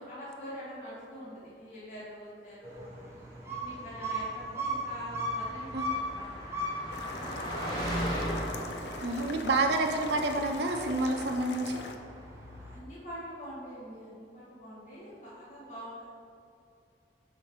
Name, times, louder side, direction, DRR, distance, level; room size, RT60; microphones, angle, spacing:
voice 1, 0.0-3.1 3.6-8.3 8.9-9.3 12.6-16.1, equal, 45° left, -11 dB, 1.3 m, -45 dB
sound 1, 2.6-12.8, equal, 15° right, 0.9 m, -39 dB
Car passing by, 4.8-10.7, equal, 25° left, 1.4 m, -37 dB
sound 2, 6.9-12.0, left 3 dB, 75° left, 0.5 m, -43 dB
voice 2, 9.0-11.8, right 2 dB, 70° right, 2 dB, 0.6 m, -28 dB
7.1 x 2.7 x 5.8 m, 2.5 s
head